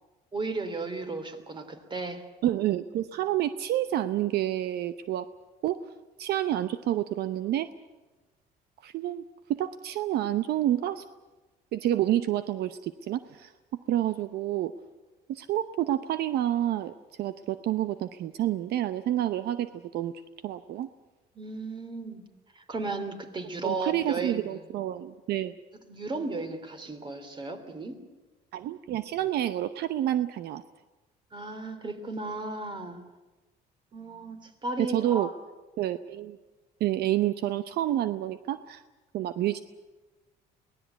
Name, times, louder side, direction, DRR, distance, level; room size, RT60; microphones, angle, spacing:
voice 1, 0.3-2.2 21.3-22.2 22.5-24.6 25.9-28.0 31.3-33.0 33.9-35.3, right 3 dB, 30° right, 8 dB, 3.0 m, -35 dB
voice 2, 2.4-5.3 5.6-5.8 6.2-7.7 8.8-9.2 9.5-11.0 11.7-13.5 13.9-14.7 15.3-20.1 20.4-20.9 23.6-25.6 28.5-30.6 34.8-35.3 35.8-36.4 36.8-38.8 39.1-39.6, right 12 dB, 70° right, 12 dB, 0.8 m, -28 dB
23.5 x 18.5 x 8.1 m, 1.2 s
cardioid pair, 110°, 17 cm